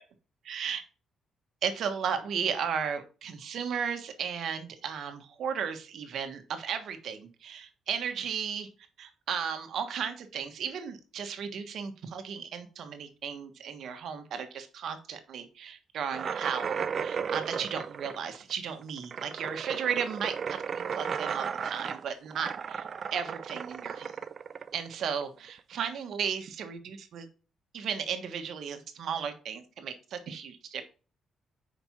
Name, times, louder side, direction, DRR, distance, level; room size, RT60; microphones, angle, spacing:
voice 1, 0.5-0.8 1.6-8.7 9.0-22.9 23.1-24.2 24.7-27.3 27.7-30.8, right 7 dB, 65° right, 7 dB, 1.2 m, -35 dB
sound 1, 16.1-25.5, right 6 dB, 50° right, 0.4 m, -35 dB
5.1 x 4.4 x 5.8 m, 0.35 s
cardioid pair, 90°, 0 cm